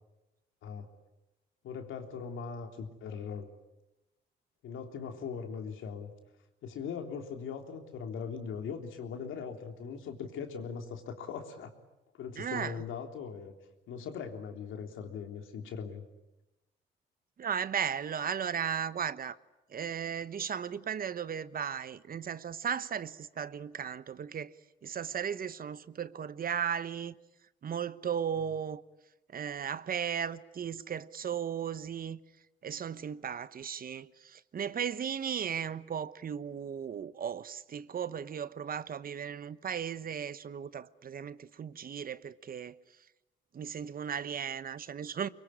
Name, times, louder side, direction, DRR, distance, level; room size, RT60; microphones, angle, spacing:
voice 1, 1.6-3.5 4.6-6.1 6.6-11.7 12.2-13.5 13.9-16.1, left 6 dB, 80° left, 3.5 m, -40 dB
voice 2, 12.4-12.8 17.4-19.4 19.7-24.5 24.8-27.1 27.6-28.8 29.3-32.2 32.6-42.8 43.5-45.3, right 8 dB, 45° right, 1.0 m, -36 dB
24.5 x 23.0 x 9.9 m
cardioid pair, 90°, 20 cm